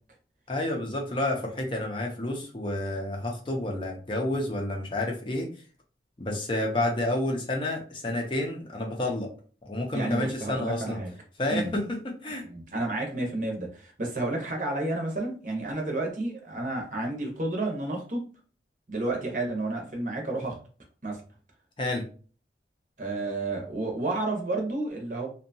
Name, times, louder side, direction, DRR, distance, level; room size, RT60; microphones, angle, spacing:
voice 1, 0.5-5.5 6.2-9.3 9.7-11.0 11.4-12.5 21.8-22.1, left 1 dB, 30° left, 1 dB, 0.5 m, -30 dB
voice 2, 9.9-11.1 11.5-11.7 12.4-18.3 18.9-20.6 21.0-21.2 23.0-25.3, right 2 dB, 45° right, 1 dB, 0.7 m, -31 dB
2.7 x 2.2 x 2.6 m, 0.39 s
head